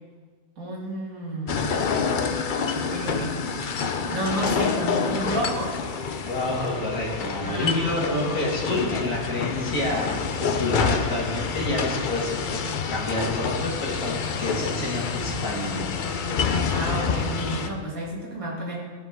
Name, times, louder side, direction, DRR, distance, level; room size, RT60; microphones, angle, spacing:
voice 1, 0.6-1.8 2.7-3.4 4.1-5.8 7.4-7.9 16.7-18.8, right 1 dB, 80° right, -3 dB, 2.5 m, -31 dB
sound 1, 1.5-17.7, left 5 dB, 55° left, 0.5 m, -27 dB
voice 2, 6.3-12.6 12.9-15.8, left 1 dB, 80° left, -4 dB, 2.4 m, -28 dB
15.0 x 5.6 x 3.6 m, 1.5 s
omnidirectional pair, 1.5 m